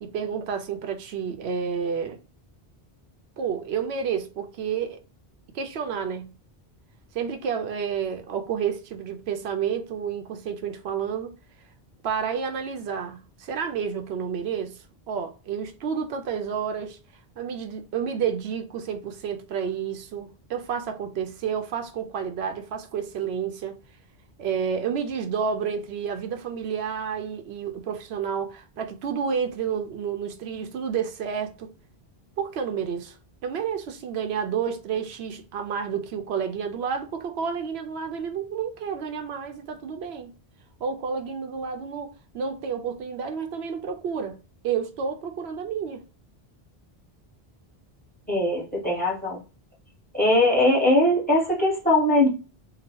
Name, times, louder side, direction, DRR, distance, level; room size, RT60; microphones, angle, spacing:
voice 1, 0.0-2.2 3.4-5.0 5.5-6.3 7.1-11.3 12.0-17.0 17.4-23.8 24.4-31.7 32.4-33.2 33.4-40.3 40.8-44.4 44.6-46.0, right 7 dB, 90° right, 0.9 m, -30 dB
voice 2, 48.3-49.4 50.1-52.3, left 1 dB, 10° left, 1.2 m, -21 dB
2.9 x 2.2 x 2.8 m
omnidirectional pair, 1.1 m